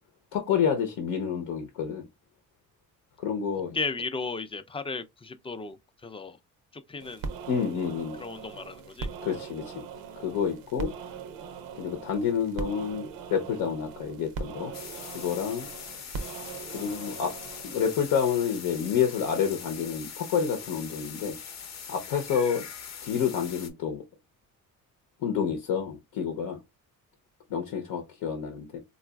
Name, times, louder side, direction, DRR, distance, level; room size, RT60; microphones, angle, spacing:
voice 1, 0.3-2.1 3.2-3.8 7.5-8.2 9.2-9.8 10.2-10.9 11.8-14.7 15.1-15.7 16.7-17.4 17.6-21.4 21.9-22.7 23.0-24.0 25.2-26.6 27.5-28.8, left 7 dB, 85° left, 0.8 m, -29 dB
voice 2, 3.7-6.4 6.7-7.3 8.2-9.4, left 4 dB, 15° left, 0.4 m, -35 dB
sound 1, 7.0-17.9, right 5 dB, 90° right, 0.6 m, -40 dB
yellow vented bulbul, 14.7-23.7, left 7 dB, 55° left, 0.7 m, -42 dB
3.9 x 2.4 x 2.2 m
cardioid pair, 85°, 34 cm